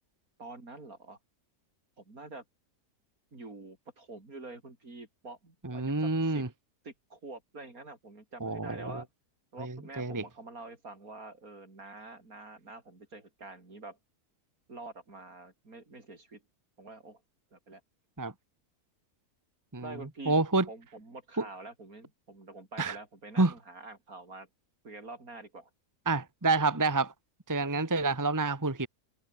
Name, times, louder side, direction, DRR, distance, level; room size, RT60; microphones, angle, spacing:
voice 1, 0.4-1.2 2.0-2.4 3.3-6.4 6.8-9.1 9.5-14.0 14.7-16.4 16.8-17.2 17.5-17.8 19.8-20.3 20.7-24.5 24.8-25.7, right 2 dB, 65° right, 5.1 m, -47 dB
voice 2, 5.6-6.5 8.4-9.0 9.6-10.2 18.2-18.3 19.7-19.9 20.3-20.6 22.8-23.0 23.4-23.5 26.1-27.1 27.5-28.9, right 3 dB, 15° right, 1.3 m, -28 dB
open air
omnidirectional pair, 1.6 m